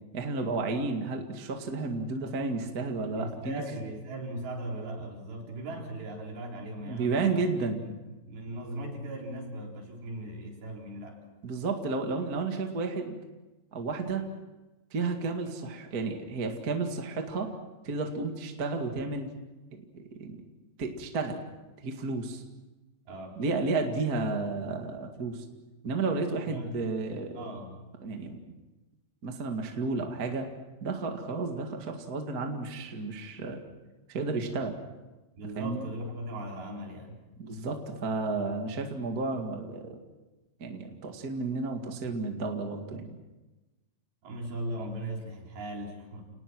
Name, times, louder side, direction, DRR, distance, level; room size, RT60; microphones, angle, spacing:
voice 1, 0.1-3.7 6.8-7.9 11.4-13.2 13.7-14.3 14.9-17.5 17.8-19.3 19.7-20.4 20.8-21.4 21.8-22.4 23.3-25.4 25.8-27.4 28.0-28.5 29.2-30.5 30.8-33.6 34.1-34.8 35.5-35.8 37.4-40.0 40.6-43.1, right 3 dB, 35° right, 3 dB, 1.6 m, -32 dB
voice 2, 3.2-7.4 7.8-11.3 23.1-23.4 26.5-26.8 27.3-27.7 35.4-37.2 44.2-46.3, right 1 dB, 65° right, 0 dB, 5.8 m, -38 dB
30.0 x 19.5 x 6.2 m, 1.1 s
omnidirectional pair, 4.8 m